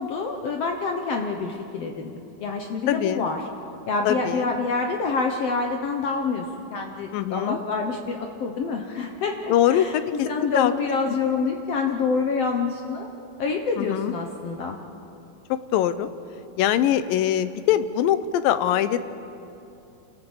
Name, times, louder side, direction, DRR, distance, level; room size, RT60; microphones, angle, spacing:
voice 1, 0.0-2.1 2.4-3.5 3.9-6.5 6.7-13.1 13.4-14.8, left 4 dB, 65° left, 3 dB, 1.6 m, -27 dB
voice 2, 2.9-3.3 4.1-4.5 7.1-7.6 9.5-10.0 10.4-10.7 13.8-14.1 15.7-16.1 16.6-19.0, left 11 dB, 85° left, 13 dB, 2.5 m, -22 dB
28.0 x 16.0 x 7.2 m, 2.8 s
omnidirectional pair, 3.9 m